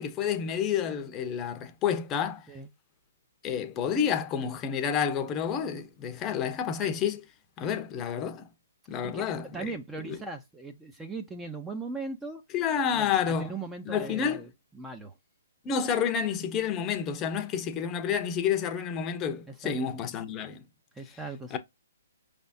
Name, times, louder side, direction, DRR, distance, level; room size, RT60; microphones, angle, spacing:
voice 1, 0.0-2.5 3.4-7.2 7.6-8.5 8.9-9.7 10.0-10.2 12.5-13.5 13.8-14.4 15.6-20.6 21.5-21.6, left 7 dB, 20° left, 0.8 m, -29 dB
voice 2, 9.0-12.4 12.9-15.1 19.5-19.7 20.9-21.6, right 3 dB, 10° right, 0.7 m, -39 dB
5.6 x 3.5 x 2.7 m
hypercardioid pair, 145°, 0 cm